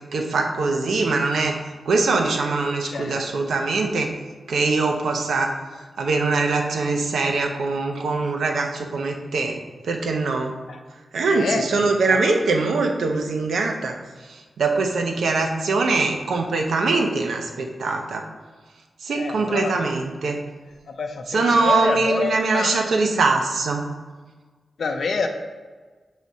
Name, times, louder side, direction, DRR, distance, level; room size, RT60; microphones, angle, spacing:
voice 1, 0.1-1.6 1.9-4.1 4.5-5.5 6.0-9.6 9.8-10.6 11.1-13.9 14.3-18.3 19.0-20.4 21.3-23.9, right 3 dB, 85° right, 3 dB, 0.8 m, -22 dB
voice 2, 2.8-3.3 10.7-10.8 11.3-12.3 19.1-19.9 20.9-22.9 24.8-25.3, left 4 dB, 65° left, 5 dB, 0.6 m, -28 dB
6.1 x 4.0 x 4.1 m, 1.4 s
wide cardioid pair, 170°, 0 cm